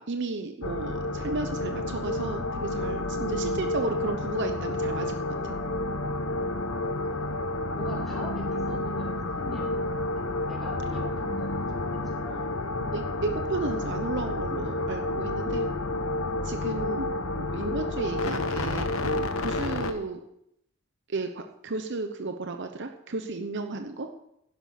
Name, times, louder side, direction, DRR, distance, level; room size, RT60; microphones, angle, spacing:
voice 1, 0.0-5.1 5.4-5.5 12.9-15.7 16.4-20.2 21.1-24.1, right 3 dB, 60° right, 6 dB, 0.9 m, -33 dB
sound 1, 0.6-19.9, left 2 dB, 80° left, 1.1 m, -30 dB
voice 2, 6.3-13.0, equal, ahead, -6 dB, 5.1 m, -44 dB
11.5 x 11.0 x 5.9 m, 0.78 s
head